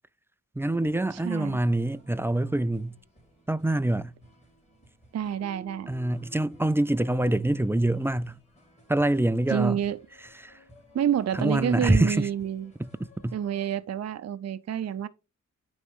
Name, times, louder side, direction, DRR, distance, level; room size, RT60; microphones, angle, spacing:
sound 1, 0.6-13.7, equal, 20° left, 2.6 m, -56 dB
voice 1, 0.6-3.0 3.5-4.1 5.9-8.4 8.9-9.8 10.4-10.6 11.3-12.3 12.8-12.9 13.2-13.4, right 1 dB, 10° right, 0.3 m, -25 dB
voice 2, 1.1-1.6 5.1-5.9 9.5-10.0 10.9-12.7 13.3-15.1, right 9 dB, 50° right, 0.6 m, -28 dB
Keyboard (musical), 5.4-8.3, equal, 75° left, 2.1 m, -54 dB
9.4 x 3.1 x 5.4 m
cardioid pair, 75°, 33 cm